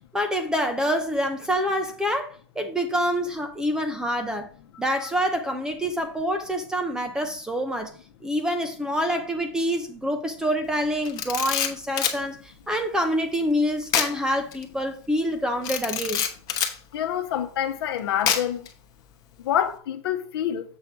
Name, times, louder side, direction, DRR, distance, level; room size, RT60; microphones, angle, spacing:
voice 1, 0.1-4.5 4.8-7.9 8.2-16.2, equal, 5° right, 0.6 m, -26 dB
Camera, 11.0-12.2 13.9-14.2 14.5-14.6 15.6-16.8 18.3-18.7, left 9 dB, 25° left, 1.1 m, -25 dB
voice 2, 16.9-18.6 19.5-20.6, left 10 dB, 55° left, 1.0 m, -26 dB
7.4 x 3.7 x 6.1 m
hypercardioid pair, 150°, 15 cm